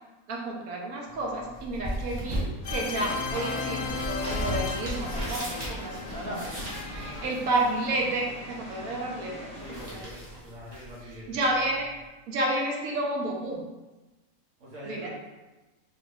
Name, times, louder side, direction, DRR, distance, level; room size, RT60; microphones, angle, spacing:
voice 1, 0.3-9.5 9.9-10.0 11.3-11.9 12.3-13.6 14.9-15.1, right 1 dB, 75° right, -1 dB, 1.2 m, -31 dB
sound 1, 1.1-12.1, right 1 dB, 30° right, 1.1 m, -38 dB
sound 2, 2.6-7.3, left 5 dB, 60° left, 0.9 m, -36 dB
Rain, 2.6-9.9, left 1 dB, 5° left, 0.8 m, -41 dB
voice 2, 6.9-7.3 9.6-11.4 14.6-15.1, equal, 60° right, -5 dB, 1.5 m, -44 dB
3.2 x 3.2 x 4.7 m, 1.1 s
omnidirectional pair, 1.5 m